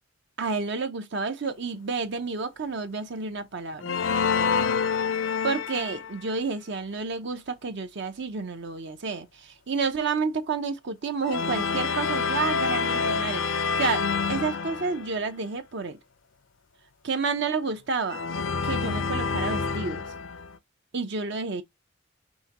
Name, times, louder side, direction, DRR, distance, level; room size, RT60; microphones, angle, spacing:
voice 1, 0.4-4.0 5.4-16.0 17.0-18.2 18.6-20.1 20.9-21.6, right 4 dB, 60° right, 0.7 m, -30 dB
sound 1, 3.8-6.2 11.2-15.3 18.1-20.5, left 5 dB, 70° left, 0.5 m, -27 dB
5.5 x 3.0 x 2.9 m
head